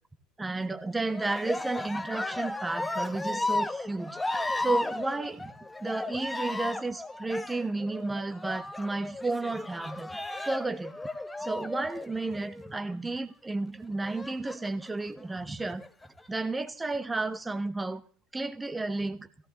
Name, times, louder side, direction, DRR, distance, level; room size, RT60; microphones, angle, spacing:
voice 1, 0.4-4.2 4.6-5.5 5.8-10.1 10.4-10.9 11.4-15.8 16.3-18.0 18.3-19.3, right 2 dB, 15° right, 6 dB, 1.1 m, -32 dB
Cheering, 1.1-12.8 14.0-14.9 15.6-16.3, left 2 dB, 10° left, 1.2 m, -35 dB
17.0 x 14.5 x 3.0 m, 0.43 s
hypercardioid pair, 75°, 0 cm